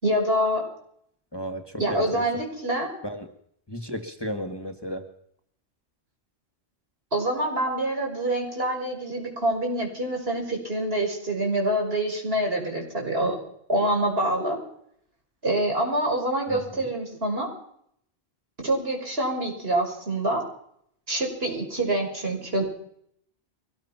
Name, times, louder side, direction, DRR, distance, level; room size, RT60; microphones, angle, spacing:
voice 1, 0.0-0.7 1.8-2.9 7.1-13.4 13.7-14.6 15.4-17.5 18.6-20.4 21.1-22.6, right 1 dB, 70° right, 1 dB, 6.3 m, -26 dB
voice 2, 1.3-2.2 3.0-3.3 3.7-5.1 16.5-16.9, equal, 25° left, 7 dB, 1.9 m, -34 dB
23.5 x 19.0 x 6.0 m, 0.69 s
omnidirectional pair, 1.1 m